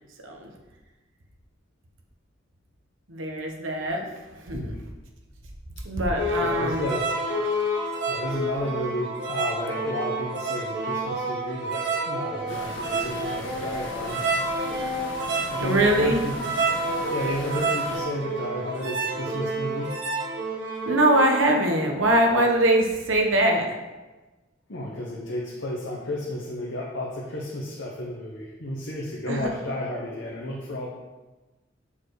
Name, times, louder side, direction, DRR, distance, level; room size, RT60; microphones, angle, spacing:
voice 1, 3.1-4.1 4.3-4.7 5.8-6.9 15.6-16.2 20.8-23.7 29.3-29.5, right 1 dB, 90° right, 2 dB, 1.2 m, -22 dB
sound 1, 6.1-21.5, right 2 dB, 60° right, 1.2 m, -29 dB
voice 2, 6.4-7.1 8.0-14.2 15.5-16.3 17.1-20.0 24.7-30.9, left 1 dB, 60° left, -3 dB, 1.1 m, -32 dB
sound 2, 12.5-18.0, left 2 dB, 80° left, 1.2 m, -39 dB
7.1 x 4.7 x 4.8 m, 1.2 s
head